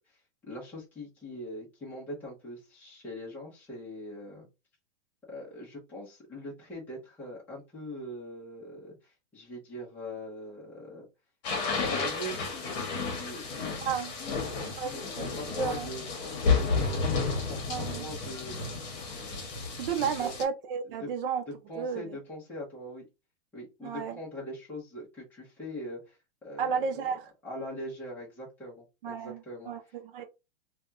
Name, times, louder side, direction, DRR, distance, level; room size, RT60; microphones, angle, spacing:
voice 1, 0.1-4.5 5.3-11.0 11.7-13.9 14.2-16.0 16.5-18.7 19.9-20.3 21.0-21.1 21.5-23.0 23.5-27.1 27.4-29.9, equal, 5° left, 0.7 m, -42 dB
sound 1, 11.4-20.4, left 4 dB, 40° left, 1.1 m, -32 dB
voice 2, 13.8-14.1 14.6-15.3 15.6-15.9 17.7-18.1 19.8-21.4 21.7-22.0 23.8-24.2 26.6-27.3 29.0-29.4 29.7-29.8 30.1-30.2, right 6 dB, 50° right, 0.7 m, -32 dB
3.3 x 2.3 x 2.6 m
supercardioid pair, 175°, 35 cm